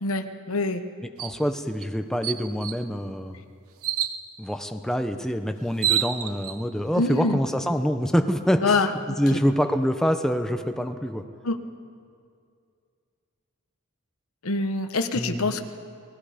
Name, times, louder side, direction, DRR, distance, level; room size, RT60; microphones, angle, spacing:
voice 1, 0.0-0.8 7.0-7.4 8.6-9.4 11.4-11.6 14.4-15.6, left 3 dB, 80° left, 8 dB, 1.1 m, -25 dB
voice 2, 1.0-3.4 4.4-11.2 15.1-15.6, equal, ahead, 6 dB, 0.8 m, -26 dB
sound 1, 1.2-1.4 1.8-1.9 2.2-2.8 3.8-4.2 5.3-5.4 5.7-6.6, right 10 dB, 80° right, 0.9 m, -27 dB
28.5 x 20.0 x 5.1 m, 2.3 s
head